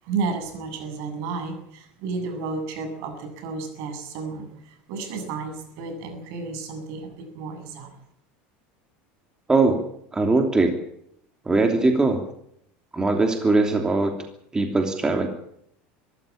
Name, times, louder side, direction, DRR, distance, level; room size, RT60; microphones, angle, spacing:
voice 1, 0.0-8.0, right 4 dB, 65° right, 6 dB, 7.9 m, -32 dB
voice 2, 9.5-9.8 10.1-10.7 11.4-12.2 12.9-14.2 14.5-15.3, right 3 dB, 15° right, 4 dB, 2.9 m, -20 dB
24.0 x 14.0 x 8.8 m, 0.72 s
supercardioid pair, 135°, 5 cm